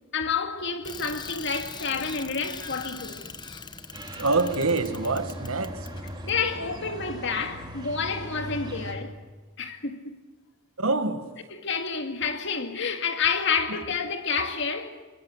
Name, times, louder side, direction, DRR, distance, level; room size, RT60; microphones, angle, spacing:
voice 1, 0.1-3.2 6.2-9.2 9.6-10.2 11.5-15.0, left 5 dB, 55° left, 2.1 m, -29 dB
Bicycle, 0.8-6.3, left 5 dB, 20° left, 0.9 m, -41 dB
sound 1, 3.9-8.9, equal, 20° right, 3.2 m, -39 dB
voice 2, 4.2-5.9 10.8-11.3 13.7-13.8, right 3 dB, 75° right, 1.7 m, -26 dB
22.0 x 22.0 x 7.9 m
head